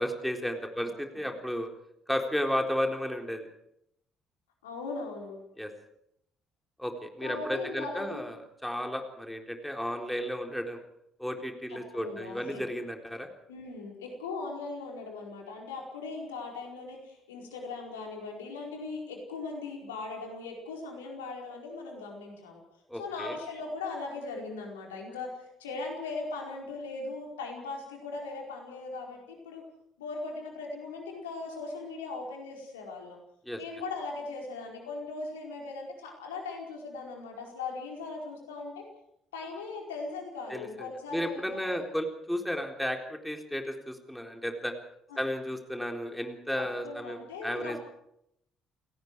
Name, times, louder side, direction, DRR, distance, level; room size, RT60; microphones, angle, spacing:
voice 1, 0.0-1.7 2.1-3.5 5.6-5.7 6.8-10.8 11.2-13.3 22.9-23.4 33.5-33.6 40.5-44.7 45.2-47.8, equal, 5° left, 3 dB, 4.0 m, -33 dB
voice 2, 4.6-5.4 7.2-8.2 11.7-12.7 13.5-22.6 22.9-25.3 25.6-29.6 30.0-33.2 33.6-38.8 39.3-41.8 45.1-45.2 46.6-47.8, left 3 dB, 80° left, 1 dB, 4.7 m, -39 dB
30.0 x 18.0 x 4.8 m, 0.76 s
figure-of-eight pair, 45°, 0 cm